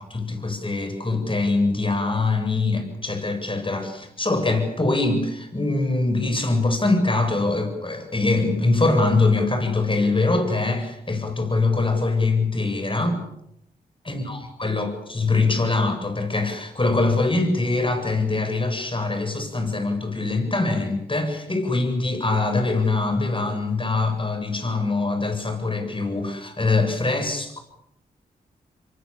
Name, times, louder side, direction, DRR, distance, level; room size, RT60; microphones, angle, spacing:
voice 1, 0.0-13.2 14.0-27.6, left 3 dB, 30° left, 7 dB, 7.8 m, -23 dB
25.5 x 23.5 x 7.3 m, 0.78 s
supercardioid pair, 40°, 18 cm